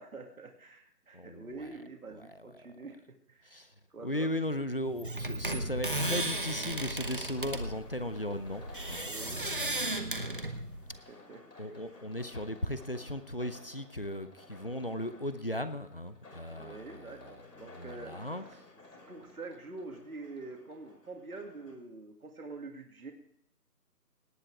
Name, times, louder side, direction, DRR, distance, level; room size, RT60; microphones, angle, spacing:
voice 1, 0.0-3.5 3.9-4.3 9.0-10.6 11.1-11.9 16.6-18.6 18.9-23.1, right 3 dB, 60° right, 3 dB, 2.3 m, -46 dB
voice 2, 1.1-1.5 3.5-3.7 4.0-10.0 11.6-16.8 17.8-18.4, left 1 dB, 35° left, 12 dB, 0.7 m, -37 dB
sound 1, 4.9-11.0, right 1 dB, 35° right, 1.0 m, -35 dB
sound 2, 5.3-21.8, left 2 dB, 80° left, 5.5 m, -55 dB
18.0 x 9.5 x 4.7 m, 0.71 s
figure-of-eight pair, 175°, 48 cm